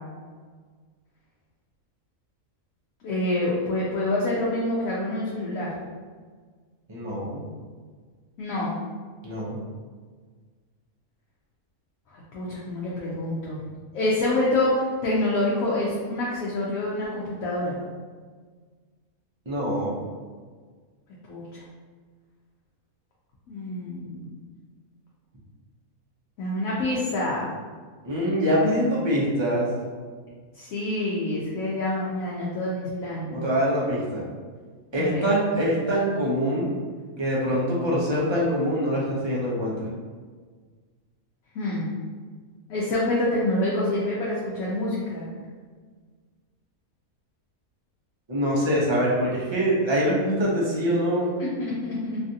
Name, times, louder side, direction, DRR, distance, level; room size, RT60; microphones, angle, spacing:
voice 1, 3.0-5.7 8.4-8.8 12.1-13.6 13.9-17.8 21.3-21.6 23.5-24.3 26.4-27.5 30.6-33.4 34.9-35.3 41.5-41.9 42.7-45.3 51.4-52.2, left 1 dB, 75° left, -6 dB, 1.0 m, -27 dB
voice 2, 6.9-7.4 9.2-9.6 19.5-19.9 28.0-29.7 33.3-34.2 34.9-36.7 37.2-39.7 48.3-51.3, equal, 30° right, -6 dB, 0.5 m, -24 dB
3.2 x 2.4 x 2.6 m, 1.5 s
omnidirectional pair, 1.5 m